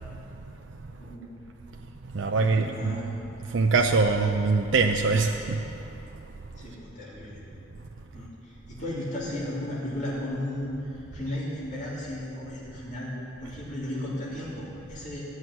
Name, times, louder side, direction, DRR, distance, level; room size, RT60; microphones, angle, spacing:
voice 1, 1.0-1.4 2.4-3.2 6.6-7.4 8.1-15.2, left 1 dB, 40° left, -8 dB, 2.8 m, -35 dB
voice 2, 2.1-3.1 3.5-5.6, right 4 dB, 70° right, 2 dB, 0.6 m, -23 dB
13.5 x 6.4 x 9.4 m, 3.0 s
head